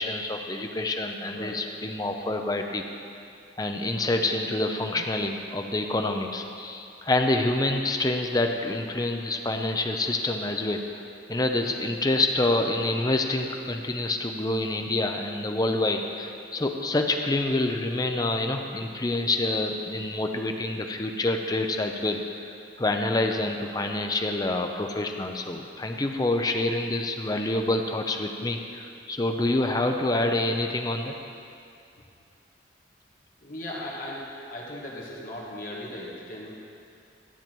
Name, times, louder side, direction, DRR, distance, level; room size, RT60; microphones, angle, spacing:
voice 1, 0.0-2.8 3.6-11.0 11.3-22.2 22.8-31.1, left 2 dB, 20° left, 4 dB, 0.6 m, -27 dB
voice 2, 33.4-34.2 34.5-36.5, left 1 dB, 50° left, -4 dB, 1.8 m, -37 dB
12.5 x 7.2 x 4.5 m, 2.5 s
head